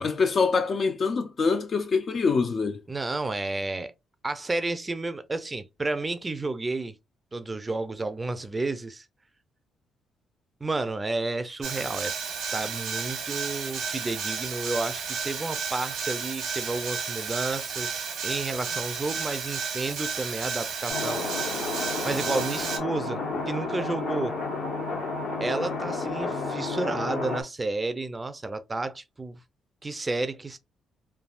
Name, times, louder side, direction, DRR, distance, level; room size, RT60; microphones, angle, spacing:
voice 1, 0.0-2.8, left 4 dB, 45° left, 0.4 m, -25 dB
voice 2, 2.9-3.9 4.2-7.0 7.3-9.1 10.6-12.1 12.5-21.3 22.0-24.4 25.4-29.4 29.8-30.6, right 3 dB, 25° right, 0.5 m, -31 dB
sound 1, 11.6-22.8, right 6 dB, 80° right, 1.2 m, -32 dB
sound 2, 20.9-27.4, left 3 dB, 70° left, 1.0 m, -31 dB
3.4 x 2.3 x 2.4 m
cardioid pair, 90°, 0 cm